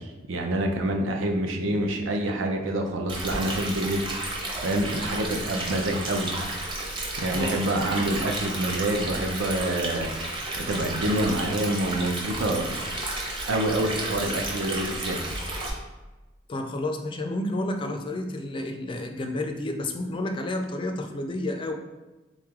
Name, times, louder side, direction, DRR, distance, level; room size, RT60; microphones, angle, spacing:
voice 1, 0.0-4.0 4.6-6.3 7.2-10.1 10.6-12.6 13.5-15.2, right 1 dB, 85° right, 2 dB, 0.6 m, -27 dB
Stream, 3.1-15.7, right 2 dB, 25° right, 0.8 m, -32 dB
voice 2, 7.3-7.6 16.5-21.7, left 1 dB, 25° left, 5 dB, 0.3 m, -30 dB
3.8 x 3.2 x 3.5 m, 1.1 s
head